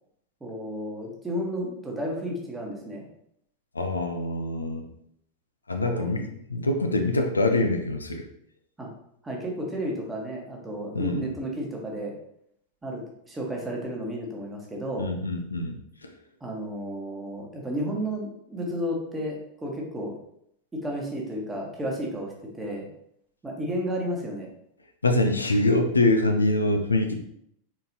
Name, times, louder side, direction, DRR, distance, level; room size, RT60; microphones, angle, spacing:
voice 1, 0.4-3.1 5.8-6.2 8.8-8.9 9.2-12.2 12.8-15.1 16.4-20.1 20.7-22.9 23.4-24.5, equal, 10° right, -1 dB, 1.2 m, -32 dB
voice 2, 3.8-4.8 5.7-6.2 6.5-8.2 10.9-11.2 15.0-15.8 25.0-27.2, left 2 dB, 80° left, 4 dB, 0.5 m, -24 dB
4.2 x 3.9 x 2.8 m, 0.72 s
figure-of-eight pair, 90°, 0 cm